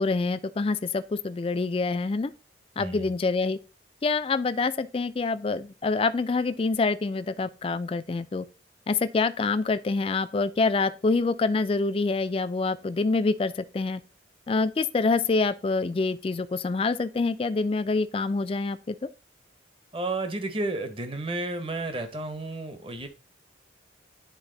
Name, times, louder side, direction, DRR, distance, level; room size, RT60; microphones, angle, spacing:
voice 1, 0.0-2.3 2.8-3.6 4.0-8.5 8.9-14.0 14.5-18.9, left 3 dB, 30° left, 0.3 m, -26 dB
voice 2, 2.8-3.1 19.9-23.1, right 2 dB, 30° right, 0.8 m, -32 dB
9.9 x 3.5 x 3.8 m
head